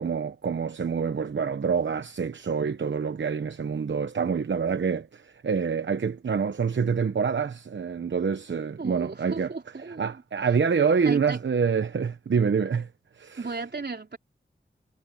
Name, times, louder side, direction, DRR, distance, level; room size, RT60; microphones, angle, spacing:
voice 1, 0.0-9.5 10.0-12.9 13.1-13.5, right 6 dB, 75° right, 1.0 m, -26 dB
voice 2, 8.8-10.2 11.0-11.4 13.4-14.2, right 3 dB, 60° right, 4.1 m, -35 dB
cardioid pair, 45°, 19 cm